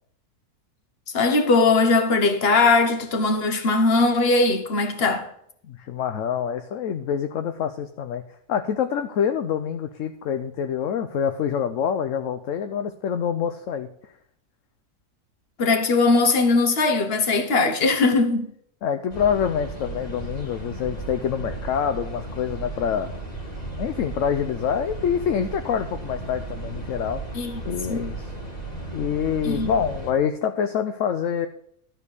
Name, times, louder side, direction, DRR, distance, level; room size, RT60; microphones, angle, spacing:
voice 1, 1.1-5.3 15.6-18.5 27.3-27.6 27.9-28.1 29.4-29.7, left 3 dB, 45° left, 1.3 m, -20 dB
voice 2, 5.7-8.2 8.5-13.9 18.8-23.2 23.8-27.2 27.7-28.3 28.9-31.5, left 8 dB, 65° left, 0.9 m, -26 dB
sound 1, 19.1-30.1, right 2 dB, 25° left, 2.4 m, -35 dB
12.5 x 4.5 x 8.2 m
omnidirectional pair, 1.6 m